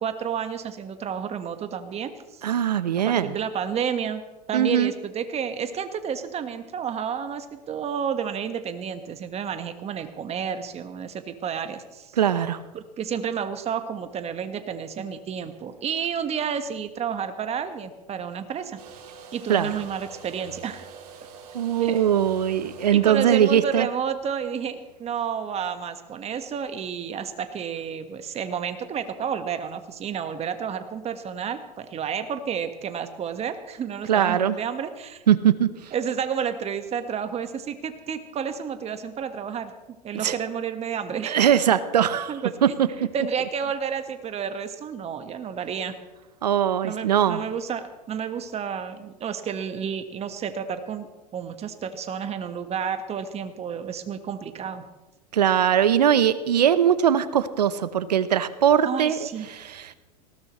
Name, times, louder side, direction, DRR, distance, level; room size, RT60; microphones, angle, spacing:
voice 1, 0.0-2.5 3.0-4.2 4.5-12.2 12.7-18.8 19.3-20.8 21.8-22.0 22.9-35.2 35.9-39.7 40.0-41.4 42.3-42.5 43.0-46.0 46.8-51.1 51.3-54.8 58.8-59.5, right 7 dB, 30° right, 9 dB, 1.5 m, -31 dB
voice 2, 2.4-3.3 4.5-4.9 12.2-12.6 19.5-19.7 21.5-23.9 34.1-34.6 35.3-35.7 40.2-40.3 41.2-42.3 42.6-42.9 46.4-47.4 55.3-59.9, right 9 dB, 85° right, 14 dB, 0.9 m, -21 dB
sound 1, 18.8-24.2, right 6 dB, 65° right, 3.0 m, -46 dB
19.0 x 17.0 x 3.2 m, 1.1 s
hypercardioid pair, 90°, 21 cm